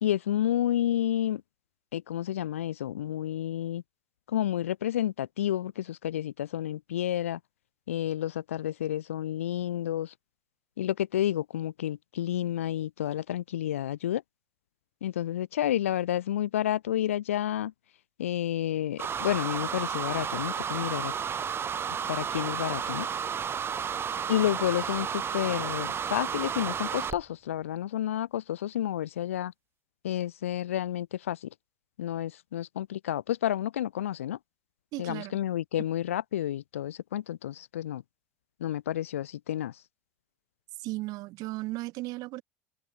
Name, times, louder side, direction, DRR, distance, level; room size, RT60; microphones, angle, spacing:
voice 1, 0.0-1.4 1.9-3.8 4.3-7.4 7.9-10.1 10.8-14.2 15.0-17.7 18.2-21.1 22.1-23.1 24.3-29.5 30.0-31.5 32.0-34.4 35.0-38.0 38.6-39.8, left 11 dB, 85° left, 3.0 m, -30 dB
sound 1, 19.0-27.2, right 7 dB, 35° right, 1.6 m, -32 dB
voice 2, 34.9-35.4 40.8-42.4, right 20 dB, 60° right, 3.4 m, -35 dB
hypercardioid pair, 80°, 7 cm